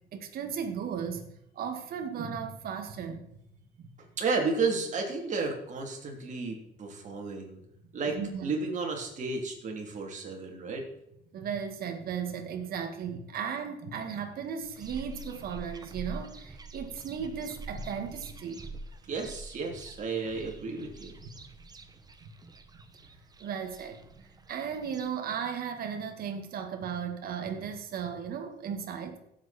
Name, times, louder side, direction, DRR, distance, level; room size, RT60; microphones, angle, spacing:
voice 1, 0.1-1.3 1.5-3.3 3.8-3.9 8.1-8.5 11.3-18.6 21.2-21.3 22.2-22.3 23.4-29.2, right 7 dB, 60° right, 2.0 m, -36 dB
voice 2, 4.2-7.6 7.9-10.8 19.1-21.1, right 4 dB, 45° right, 3.3 m, -32 dB
sound 1, 14.6-25.1, right 2 dB, 25° right, 1.1 m, -46 dB
16.0 x 7.9 x 4.4 m
cardioid pair, 110°, 17 cm